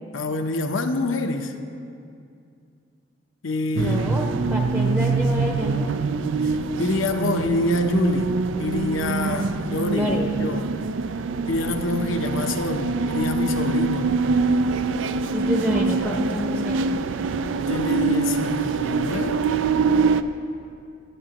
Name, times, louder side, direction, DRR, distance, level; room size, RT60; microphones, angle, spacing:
voice 1, 0.1-1.5 3.4-4.2 6.4-10.7 11.5-14.1 17.6-19.4, left 3 dB, 90° left, 0.8 m, -26 dB
voice 2, 3.8-6.1 9.9-10.3 15.3-17.0, left 1 dB, 10° right, 0.7 m, -28 dB
sound 1, 3.8-20.2, right 4 dB, 80° right, 0.4 m, -24 dB
22.5 x 8.8 x 2.9 m
head